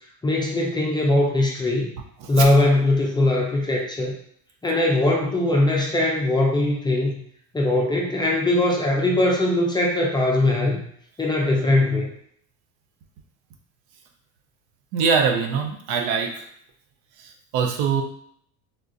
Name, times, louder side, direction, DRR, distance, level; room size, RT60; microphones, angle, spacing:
voice 1, 0.2-1.9 2.3-4.1 4.6-7.1 7.5-10.8 11.2-12.1, left 2 dB, 10° left, -2 dB, 0.4 m, -21 dB
voice 2, 14.9-16.5 17.2-18.0, right 6 dB, 75° right, 4 dB, 0.7 m, -23 dB
3.5 x 2.5 x 2.5 m, 0.66 s
cardioid pair, 120°, 38 cm